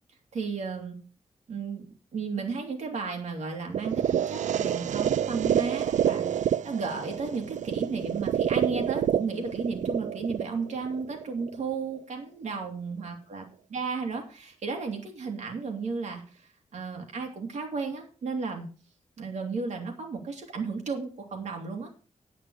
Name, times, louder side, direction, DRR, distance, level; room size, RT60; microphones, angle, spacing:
voice 1, 0.3-1.0 1.5-13.4 13.7-18.7 19.2-21.9, right 4 dB, 75° right, 2 dB, 2.6 m, -34 dB
sound 1, 3.7-11.7, right 9 dB, 90° right, 0.5 m, -28 dB
9.9 x 9.9 x 4.7 m, 0.37 s
wide cardioid pair, 150°, 12 cm